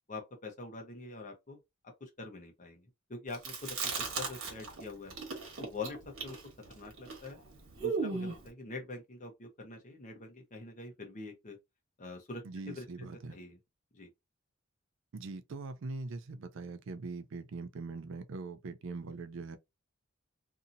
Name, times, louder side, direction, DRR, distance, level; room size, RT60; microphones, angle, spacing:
voice 1, 0.1-1.6 2.0-5.1 5.6-6.4 6.7-7.4 7.7-11.6 12.0-12.8 13.3-13.6 13.9-14.1, left 3 dB, 40° left, 0.9 m, -44 dB
Chewing mastication, 3.3-4.8 5.1-8.5, right 4 dB, 80° right, 1.1 m, -36 dB
voice 2, 12.4-13.4 15.1-19.6, right 3 dB, 65° right, 0.4 m, -42 dB
2.7 x 2.7 x 2.6 m
head